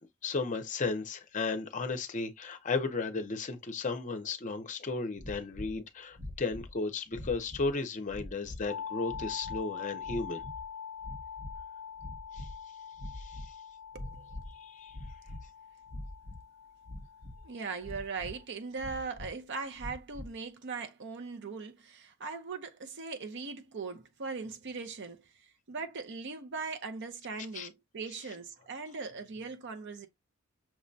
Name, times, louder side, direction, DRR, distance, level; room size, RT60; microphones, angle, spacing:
voice 1, 0.2-10.4 12.3-12.5 13.1-13.5 14.6-15.0 27.5-27.7, left 3 dB, 40° left, 0.6 m, -34 dB
sound 1, 5.2-5.8 6.1-6.7 7.1-7.7 8.1-8.7 9.0-9.6 10.0-10.7 11.0-11.6 11.9-12.6 12.9-13.5 13.9-14.5 14.9-15.5 15.9-16.4 16.8-17.5 17.8-18.4 18.8-19.3 19.8-20.3, left 1 dB, 85° right, 1.7 m, -44 dB
sound 2, 8.7-18.4, left 7 dB, 85° left, 0.4 m, -44 dB
voice 2, 13.9-14.4 17.4-30.1, right 4 dB, 60° right, 0.6 m, -40 dB
6.0 x 2.1 x 2.5 m
head